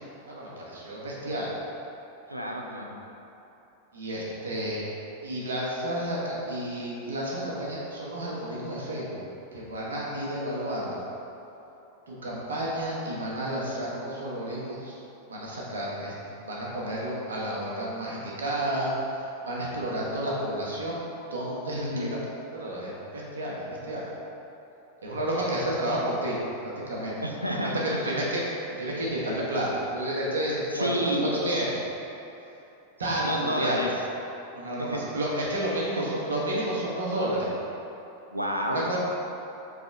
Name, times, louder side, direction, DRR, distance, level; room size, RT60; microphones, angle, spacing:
voice 1, 0.3-1.5 3.9-4.8 5.2-9.2 9.5-11.0 12.1-15.0 15.3-16.1 16.4-21.0 21.3-22.2 22.5-24.1 25.0-27.2 27.5-28.4 28.8-31.8 33.0-33.9 34.5-37.5 38.6-39.0, right 1 dB, 70° right, -5 dB, 1.0 m, -31 dB
voice 2, 2.3-3.0 21.7-22.1 27.2-28.1 30.7-31.3 33.2-33.9 34.8-35.0 36.0-36.1 38.3-38.9, equal, 85° right, 0 dB, 0.4 m, -30 dB
4.0 x 3.3 x 3.8 m, 3.0 s
figure-of-eight pair, 90°, 0 cm